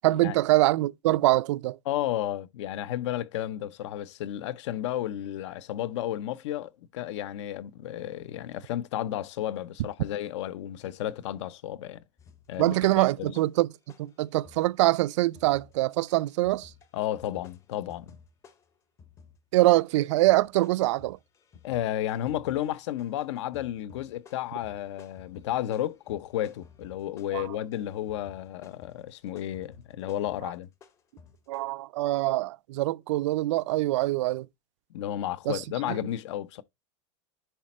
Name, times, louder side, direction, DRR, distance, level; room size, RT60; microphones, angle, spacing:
voice 1, 0.0-1.8 12.6-13.7 14.0-16.7 19.5-21.2 27.3-27.5 31.5-34.5 35.5-36.0, right 17 dB, 80° right, 0.4 m, -24 dB
voice 2, 1.9-12.0 12.5-13.3 16.9-18.1 21.6-30.7 34.9-36.6, left 12 dB, 75° left, 0.7 m, -32 dB
sound 1, 12.2-13.6 13.9-31.6, left 5 dB, 20° left, 0.6 m, -55 dB
10.0 x 4.1 x 4.2 m
supercardioid pair, 170°, 15 cm